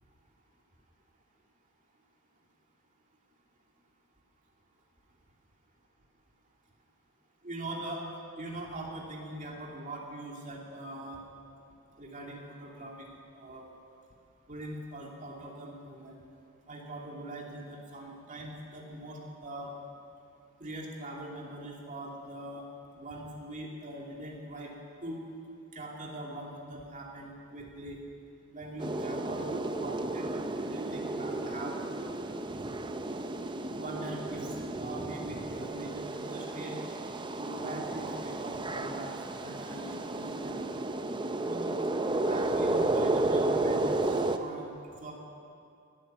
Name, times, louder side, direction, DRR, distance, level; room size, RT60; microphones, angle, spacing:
voice 1, 7.4-8.1 8.4-11.2 12.0-13.1 13.3-13.6 14.5-16.2 16.7-19.7 20.6-22.7 22.9-24.7 25.0-25.2 25.7-28.0 28.5-31.8 33.7-34.5 34.8-36.8 37.4-40.6 41.4-41.8 42.2-44.7 45.0-45.1, right 1 dB, 35° right, -1 dB, 2.5 m, -42 dB
sound 1, 28.8-44.4, right 2 dB, 20° right, 0.6 m, -32 dB
19.5 x 9.8 x 7.4 m, 2.5 s
head